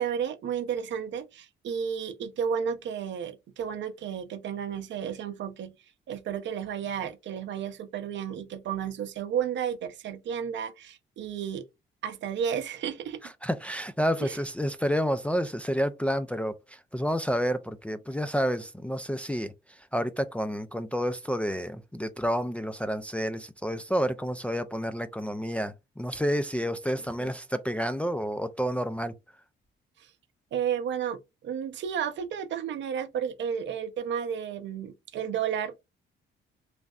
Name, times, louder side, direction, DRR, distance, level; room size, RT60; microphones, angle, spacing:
voice 1, 0.0-5.7 6.1-11.6 12.0-13.3 14.2-14.4 27.2-27.3 30.5-31.2 31.4-35.8, right 8 dB, 65° right, 0.6 m, -32 dB
voice 2, 13.2-29.1, equal, 5° left, 0.3 m, -30 dB
3.2 x 2.5 x 2.3 m
cardioid pair, 90°, 20 cm